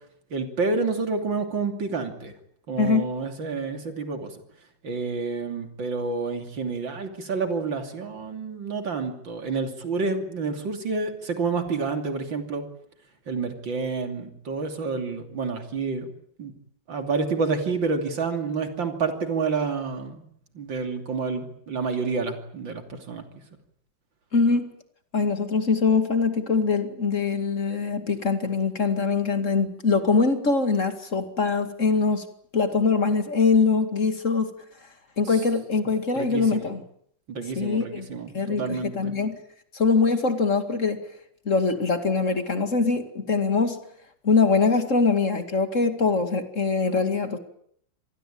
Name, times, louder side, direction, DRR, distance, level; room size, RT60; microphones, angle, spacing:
voice 1, 0.3-2.3 2.7-4.3 4.8-12.6 13.3-16.1 16.4-16.5 16.9-20.2 20.6-23.2 36.2-36.6 37.3-39.1, right 4 dB, 90° right, 6 dB, 3.6 m, -29 dB
voice 2, 24.3-24.7 25.1-32.2 32.5-34.5 35.2-36.8 37.5-38.1 38.3-39.4 39.7-41.0 41.5-43.8 44.2-47.4, left 4 dB, 40° left, 8 dB, 2.6 m, -23 dB
26.5 x 19.5 x 8.7 m, 0.67 s
omnidirectional pair, 2.0 m